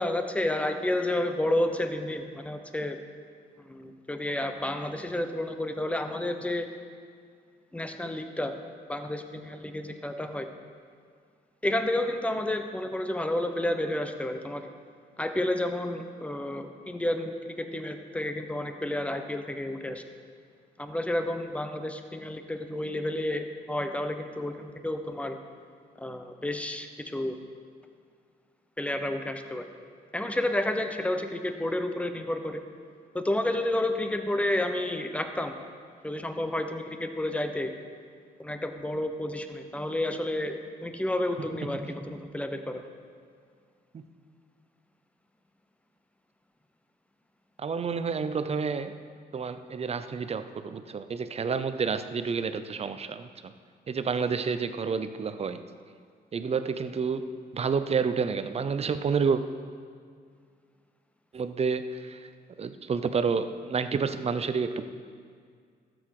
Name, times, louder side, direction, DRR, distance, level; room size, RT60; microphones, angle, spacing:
voice 1, 0.0-3.0 3.6-6.7 7.7-8.5 8.9-10.5 11.6-14.7 15.2-20.0 20.8-25.4 26.0-27.3 28.8-29.7 30.1-32.6 33.1-35.6 36.0-37.7 38.4-42.8, left 1 dB, 5° left, 7 dB, 0.9 m, -30 dB
voice 2, 47.6-48.9 49.3-53.3 53.9-55.6 56.3-57.3 57.5-59.4 61.3-62.3 62.6-64.8, right 5 dB, 35° right, 11 dB, 0.6 m, -29 dB
12.5 x 7.9 x 4.8 m, 2.1 s
cardioid pair, 85°, 17 cm